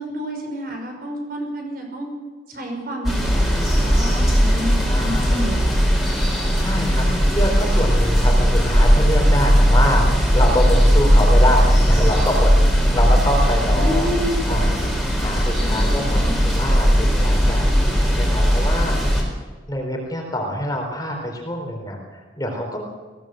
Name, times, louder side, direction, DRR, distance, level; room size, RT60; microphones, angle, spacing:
voice 1, 0.0-2.1 2.5-6.1 13.7-14.4 15.6-16.6, equal, 50° right, 2 dB, 5.9 m, -30 dB
sound 1, 3.0-19.2, equal, ahead, 4.9 m, -17 dB
voice 2, 4.8-5.4 6.6-12.5 12.9-14.1 14.5-14.9 15.2-19.2 19.7-22.8, equal, 20° left, 1 dB, 4.1 m, -25 dB
21.5 x 17.5 x 7.9 m, 1.4 s
head